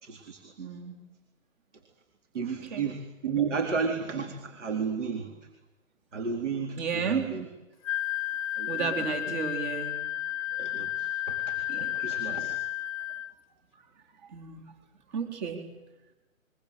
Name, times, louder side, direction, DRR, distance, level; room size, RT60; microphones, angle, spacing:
voice 1, 0.0-0.4 2.3-3.0 3.2-5.3 6.1-7.5 8.6-9.1 10.6-12.6, right 5 dB, 60° right, 5 dB, 4.1 m, -33 dB
voice 2, 0.6-1.0 2.4-2.9 6.8-7.3 8.7-10.0 11.7-12.0 14.3-14.6 15.1-15.6, right 6 dB, 35° right, 5 dB, 4.5 m, -32 dB
Wind instrument woodwind instrument, 7.8-13.3, left 14 dB, 25° left, 1.2 m, -32 dB
29.0 x 24.0 x 8.4 m, 1.0 s
hypercardioid pair, 155°, 41 cm